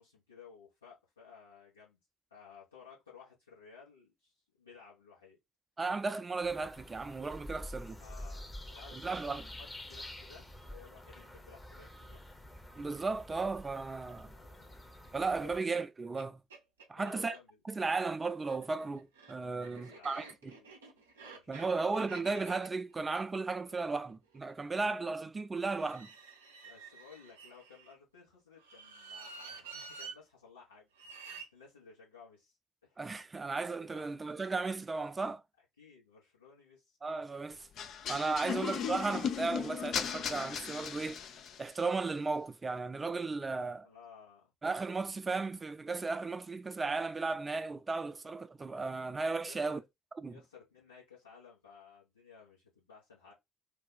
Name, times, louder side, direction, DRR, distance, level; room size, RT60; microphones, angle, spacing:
voice 1, 0.0-2.0 2.3-5.4 8.0-12.2 14.0-14.7 15.1-15.7 16.9-18.0 19.6-20.7 21.2-21.9 26.6-30.9 31.3-32.6 32.8-33.0 33.9-34.2 35.8-37.0 43.8-44.5 49.4-49.8 50.3-53.3, left 6 dB, 85° left, 1.1 m, -57 dB
voice 2, 5.8-8.0 8.9-9.4 12.8-14.3 15.1-16.4 16.9-17.4 17.7-20.5 21.5-26.1 33.0-35.4 37.0-37.7 38.1-41.2 41.6-43.9 44.6-49.8 50.2-50.4, right 3 dB, 25° right, 0.5 m, -35 dB
sound 1, 6.4-15.6, left 1 dB, 20° left, 0.8 m, -48 dB
sound 2, 15.7-15.8 16.2-16.3 16.5-17.4 18.3-24.5 25.7-27.9 28.6-30.2 30.9-31.5, right 4 dB, 80° right, 0.5 m, -50 dB
sound 3, 37.8-41.7, left 8 dB, 55° left, 0.4 m, -37 dB
2.8 x 2.3 x 3.9 m
figure-of-eight pair, 45°, 0 cm